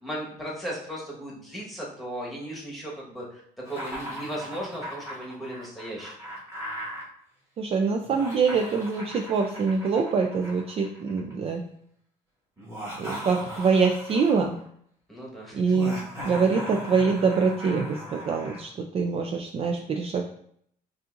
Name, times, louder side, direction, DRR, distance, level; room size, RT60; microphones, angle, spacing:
voice 1, 0.0-3.4 3.7-6.1 15.1-15.6, right 1 dB, ahead, -4 dB, 1.3 m, -36 dB
Laughter, 3.6-7.0 8.0-11.3 12.6-14.6 15.7-18.6, equal, 15° right, 1.6 m, -38 dB
voice 2, 7.6-11.6 13.0-14.6 15.5-16.0 16.2-20.2, right 5 dB, 35° right, 3 dB, 0.4 m, -24 dB
5.5 x 2.6 x 2.5 m, 0.67 s
cardioid pair, 110°, 17 cm